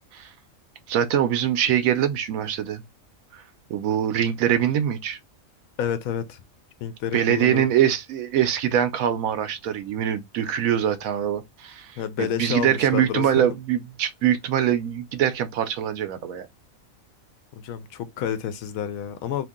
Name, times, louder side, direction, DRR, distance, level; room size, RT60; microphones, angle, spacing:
voice 1, 0.9-2.8 3.3-3.4 3.7-5.2 7.1-16.5, right 10 dB, 90° right, 1.1 m, -23 dB
voice 2, 5.8-6.4 6.8-7.7 12.0-13.4 17.6-19.5, left 8 dB, 85° left, 1.0 m, -29 dB
2.8 x 2.7 x 3.6 m
omnidirectional pair, 1.4 m